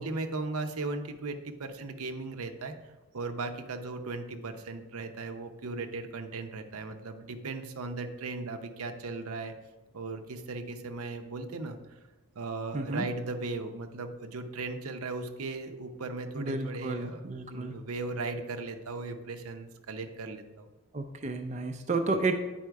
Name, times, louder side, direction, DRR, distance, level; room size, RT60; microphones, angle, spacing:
voice 1, 0.0-9.5 9.9-12.0 12.4-17.2 17.5-20.7 22.1-22.2, right 3 dB, 85° right, 6 dB, 0.7 m, -37 dB
voice 2, 12.7-13.0 16.4-17.7 20.9-22.4, right 3 dB, 30° right, 5 dB, 0.4 m, -31 dB
9.2 x 4.3 x 4.7 m, 1.1 s
head